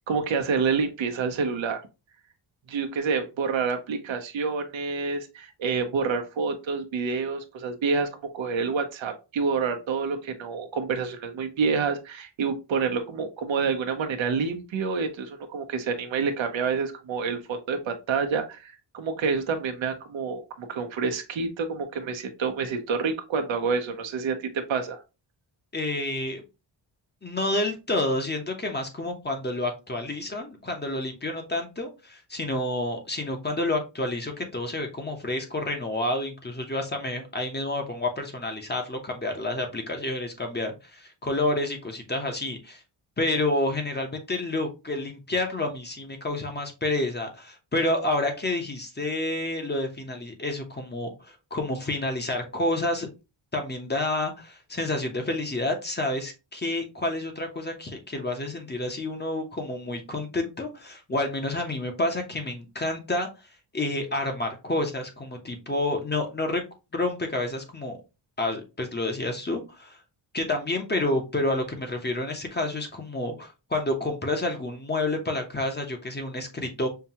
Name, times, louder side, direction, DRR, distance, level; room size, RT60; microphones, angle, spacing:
voice 1, 0.1-1.8 2.7-8.1 8.3-25.0, right 5 dB, 85° right, 5 dB, 0.9 m, -28 dB
voice 2, 25.7-26.4 27.2-42.8 43.2-53.1 53.5-63.3 63.7-66.6 66.9-68.0 68.4-70.0 70.3-76.9, left 2 dB, 25° left, 3 dB, 0.8 m, -29 dB
5.7 x 2.3 x 2.8 m, 0.28 s
wide cardioid pair, 135°, 45 cm